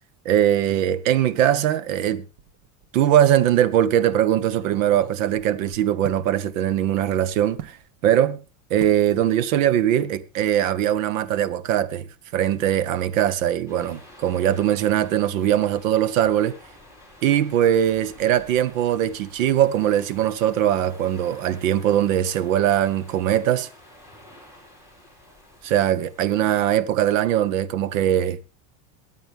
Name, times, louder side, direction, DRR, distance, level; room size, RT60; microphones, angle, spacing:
voice 1, 0.2-2.2 2.9-7.8 8.0-8.4 8.7-12.1 12.3-16.5 17.2-23.7 25.6-28.4, right 11 dB, 85° right, 1.2 m, -21 dB
sound 1, 2.4-3.0 3.3-3.4 4.2-6.3 7.6-7.8 8.8-9.1 9.4-9.7 10.0-10.2, right 11 dB, 50° right, 1.1 m, -40 dB
sound 2, 13.7-26.5, left 1 dB, 5° right, 4.6 m, -49 dB
23.5 x 9.1 x 3.5 m
supercardioid pair, 165°, 39 cm